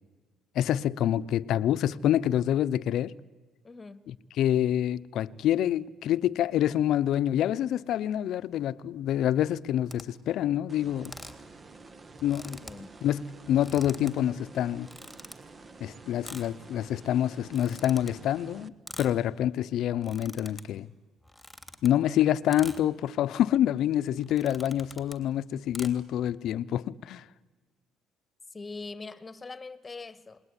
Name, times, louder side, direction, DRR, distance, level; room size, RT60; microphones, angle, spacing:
voice 1, 0.5-3.1 4.1-11.1 12.2-12.6 13.0-14.9 15.8-20.9 21.8-27.2, left 11 dB, 70° left, 0.8 m, -27 dB
voice 2, 3.6-4.1 12.6-13.0 28.5-30.4, left 3 dB, 25° left, 1.6 m, -42 dB
sound 1, 9.9-10.0 11.0-11.5 11.8-11.9 12.1-12.8 13.4-14.1 14.8-15.3 16.2-16.5 17.4-18.1 18.9-19.2 19.9-20.6 21.2-21.9 22.5-22.8 23.5-23.7 24.2-25.2 25.7-25.9, left 1 dB, ahead, 3.1 m, -45 dB
sound 2, 10.7-18.7, right 3 dB, 35° right, 1.3 m, -50 dB
28.0 x 21.0 x 9.9 m
cardioid pair, 90°, 0 cm